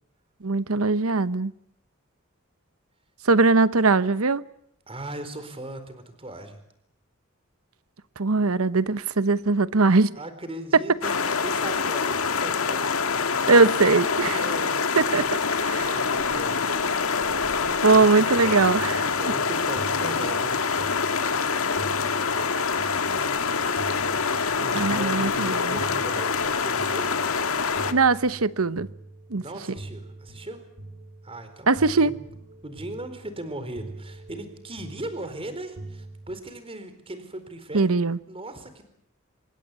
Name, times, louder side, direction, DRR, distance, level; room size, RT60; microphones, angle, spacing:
voice 1, 0.4-1.5 3.2-4.4 8.2-10.1 13.5-14.5 15.0-15.2 15.6-15.9 17.8-19.0 24.7-25.8 27.9-28.9 29.3-29.4 31.7-32.1 37.7-38.2, right 3 dB, 85° right, 1.0 m, -20 dB
voice 2, 4.9-6.6 10.2-12.8 14.3-15.2 15.5-16.7 17.9-18.7 19.1-21.6 24.6-27.2 29.4-30.6 31.2-32.2 32.6-37.9 38.3-38.8, right 1 dB, 25° right, 4.2 m, -38 dB
sound 1, 11.0-27.9, left 5 dB, 80° left, 1.8 m, -25 dB
sound 2, 18.3-36.4, right 2 dB, 65° right, 7.8 m, -44 dB
26.5 x 22.0 x 8.3 m
head